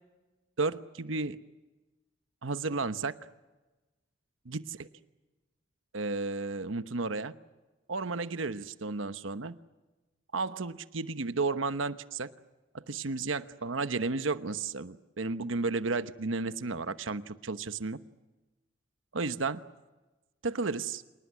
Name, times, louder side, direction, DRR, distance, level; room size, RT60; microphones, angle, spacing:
voice 1, 0.6-1.4 2.4-3.1 4.4-4.7 5.9-7.3 7.9-9.5 10.3-12.3 12.7-18.0 19.1-19.6 20.4-21.0, right 3 dB, 90° right, 12 dB, 1.0 m, -33 dB
27.5 x 19.5 x 9.8 m, 1.2 s
head